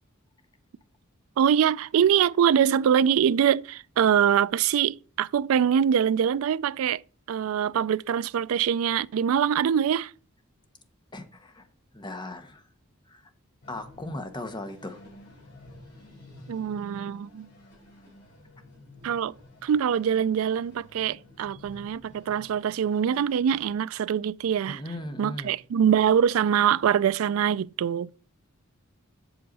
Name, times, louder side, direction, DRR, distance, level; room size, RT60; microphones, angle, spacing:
voice 1, 1.4-7.0 7.3-10.1 16.5-17.5 19.0-19.3 19.6-24.8 25.2-28.1, right 8 dB, 70° right, 0.3 m, -24 dB
voice 2, 11.1-11.7 11.9-12.6 13.1-13.2 13.7-15.0 24.7-25.5, left 1 dB, 20° left, 1.1 m, -37 dB
sound 1, 13.6-23.7, left 1 dB, 55° left, 5.1 m, -51 dB
8.0 x 6.5 x 4.0 m
head